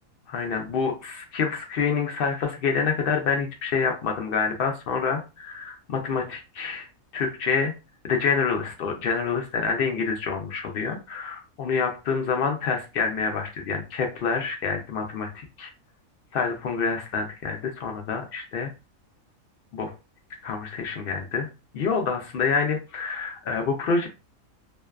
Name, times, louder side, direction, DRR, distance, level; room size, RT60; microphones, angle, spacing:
voice 1, 0.3-6.9 7.1-7.7 8.0-15.7 16.3-18.7 19.7-19.9 20.4-21.5 21.7-24.1, left 5 dB, 65° left, 3 dB, 0.5 m, -27 dB
2.6 x 2.2 x 2.2 m, 0.29 s
omnidirectional pair, 1.4 m